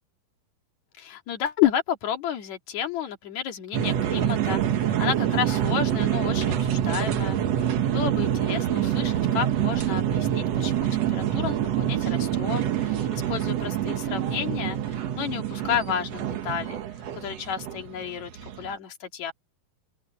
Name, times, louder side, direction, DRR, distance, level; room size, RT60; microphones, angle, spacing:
voice 1, 1.0-16.8 17.1-19.3, left 9 dB, 55° left, 3.2 m, -31 dB
sound 1, 3.7-18.7, right 10 dB, 60° right, 2.0 m, -26 dB
open air
omnidirectional pair, 4.1 m